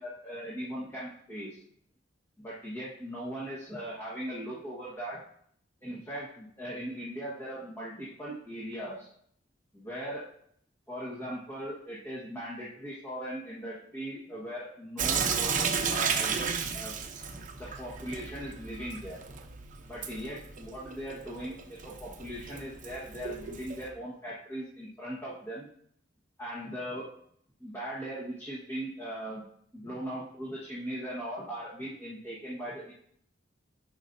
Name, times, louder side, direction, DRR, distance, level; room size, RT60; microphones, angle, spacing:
voice 1, 0.0-1.6 2.4-5.2 5.8-9.1 9.7-10.3 10.9-16.9 17.6-19.2 19.9-25.7 26.4-27.1 27.6-29.4 29.7-32.9, right 1 dB, 15° left, -8 dB, 1.4 m, -39 dB
Sink (filling or washing) / Drip, 15.0-23.9, right 6 dB, 45° right, 0.7 m, -34 dB
10.5 x 5.1 x 2.7 m, 0.66 s
head